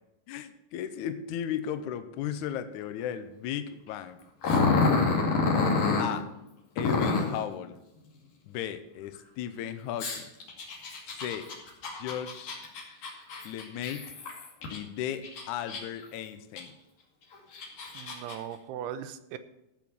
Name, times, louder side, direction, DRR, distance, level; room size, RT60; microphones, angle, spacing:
voice 1, 0.3-4.2 6.0-6.3 6.8-7.8 8.4-10.3 11.1-11.5 12.0-12.5 13.4-14.1 14.7-16.7, left 9 dB, 85° left, 9 dB, 1.7 m, -35 dB
Growling, 4.4-6.1 6.8-7.4 10.0-14.8 15.2-16.0 16.6-16.7 17.3-18.4, left 4 dB, 55° left, 3.8 m, -27 dB
voice 2, 17.9-19.4, right 10 dB, 85° right, 12 dB, 2.8 m, -38 dB
14.5 x 6.0 x 7.0 m, 0.90 s
omnidirectional pair, 4.5 m